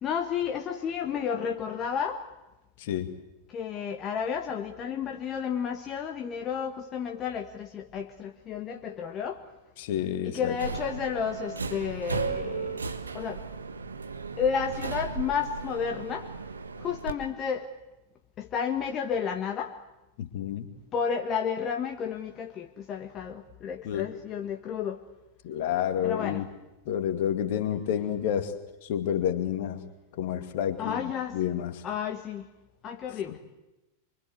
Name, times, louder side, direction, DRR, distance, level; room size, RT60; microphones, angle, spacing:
voice 1, 0.0-2.2 3.5-9.4 10.2-13.4 14.4-16.3 16.8-17.7 18.4-19.7 20.9-25.0 26.0-26.4 30.8-31.4 31.8-32.5 32.8-33.4, left 7 dB, 30° left, 4 dB, 1.5 m, -32 dB
voice 2, 2.8-3.1 9.8-10.5 20.2-20.7 23.8-24.1 25.4-26.5 26.9-28.5 28.8-29.8 30.2-31.0 31.3-31.8 33.3-33.4, left 10 dB, 50° left, 9 dB, 2.3 m, -29 dB
Subway metro underground, 10.5-17.1, right 4 dB, 75° right, 1.5 m, -35 dB
25.0 x 24.0 x 8.2 m, 0.97 s
figure-of-eight pair, 90°, 0 cm